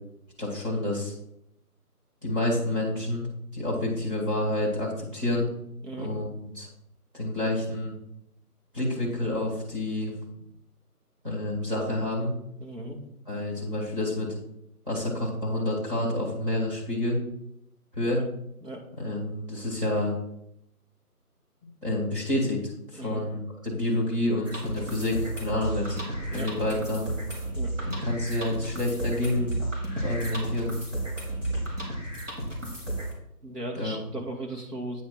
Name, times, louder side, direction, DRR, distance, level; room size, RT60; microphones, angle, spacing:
voice 1, 0.4-1.1 2.2-3.3 3.5-5.5 6.0-6.3 6.5-6.7 7.1-7.9 8.7-10.1 11.2-12.3 13.3-14.3 14.9-17.2 17.9-18.2 19.0-20.1 21.8-22.6 22.9-26.0 26.3-27.1 27.8-29.6 30.0-30.7 33.7-34.0, left 1 dB, 35° right, -7 dB, 2.1 m, -28 dB
voice 2, 12.6-13.0 18.0-18.1 18.6-18.9 22.9-23.2 26.3-26.5 27.5-27.7 33.4-35.0, right 1 dB, 85° right, 0 dB, 2.3 m, -37 dB
sound 1, 24.5-33.1, right 1 dB, 50° right, 2.0 m, -33 dB
8.5 x 3.5 x 6.2 m, 0.78 s
figure-of-eight pair, 175°, 47 cm